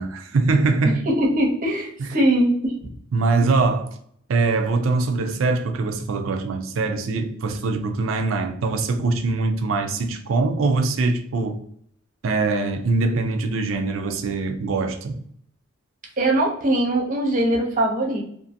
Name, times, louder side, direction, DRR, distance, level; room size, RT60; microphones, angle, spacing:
voice 1, 0.0-1.1 2.0-2.1 3.1-4.0 4.3-11.6 12.2-15.2, right 3 dB, 75° right, 0.4 m, -23 dB
voice 2, 1.1-2.7 16.2-18.2, right 1 dB, 40° right, 0.7 m, -21 dB
2.6 x 2.6 x 2.5 m
head